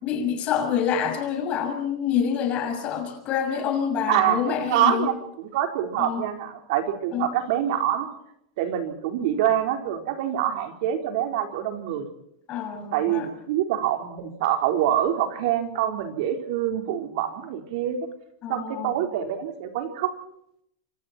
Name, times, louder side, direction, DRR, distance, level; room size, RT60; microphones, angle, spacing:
voice 1, 0.0-5.1 6.0-6.2 7.1-7.3 12.5-13.3 18.4-19.0, left 8 dB, 30° left, 6 dB, 6.3 m, -27 dB
voice 2, 4.1-8.1 8.6-12.1 12.9-18.1 18.5-20.2, right 10 dB, 55° right, 5 dB, 4.2 m, -25 dB
27.5 x 26.5 x 4.4 m, 0.73 s
supercardioid pair, 155°, 4 cm